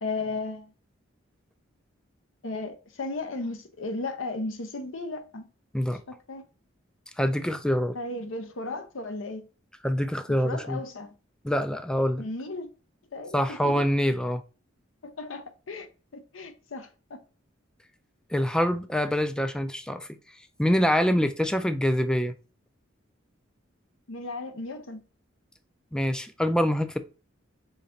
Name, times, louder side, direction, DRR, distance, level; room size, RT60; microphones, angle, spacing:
voice 1, 0.0-0.7 2.4-5.5 6.3-6.4 7.9-9.4 10.4-11.1 12.2-12.7 13.1-13.7 15.0-15.9 16.1-17.2 24.1-25.0, left 2 dB, 70° left, 0.7 m, -35 dB
voice 2, 7.2-8.0 9.8-10.8 11.4-12.2 13.3-14.4 18.3-20.1 20.6-22.3 25.9-27.0, equal, 5° left, 0.4 m, -25 dB
4.1 x 3.3 x 3.8 m
head